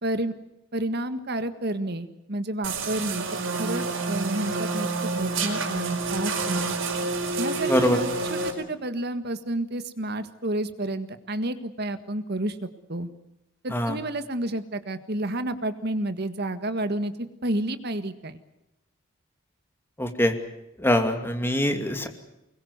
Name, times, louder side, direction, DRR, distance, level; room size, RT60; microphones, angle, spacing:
voice 1, 0.0-0.3 0.7-3.2 3.6-4.9 5.1-6.8 7.4-12.6 12.9-13.1 13.6-17.1 17.4-18.4, right 1 dB, 55° right, 10 dB, 1.7 m, -30 dB
sound 1, 2.6-8.5, right 3 dB, 85° right, 4.7 m, -28 dB
voice 2, 7.7-8.0 13.7-14.0 20.0-20.3 20.8-22.1, left 1 dB, 10° left, 5 dB, 2.6 m, -23 dB
24.5 x 21.5 x 8.1 m, 0.88 s
head